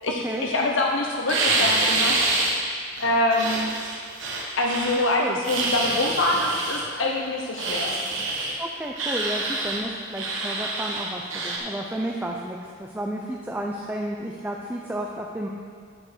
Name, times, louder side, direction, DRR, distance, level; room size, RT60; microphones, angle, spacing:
voice 1, 0.0-2.4 3.0-3.7 4.6-8.0, left 2 dB, 75° left, 0 dB, 0.8 m, -25 dB
sound 1, 1.3-2.5 3.0-5.1 5.4-6.8 7.6-8.5 9.0-9.8 10.1-11.6, right 2 dB, 85° right, 1.5 m, -26 dB
voice 2, 8.6-15.5, right 1 dB, 10° right, -1 dB, 0.5 m, -32 dB
9.7 x 5.1 x 6.6 m, 2.1 s
head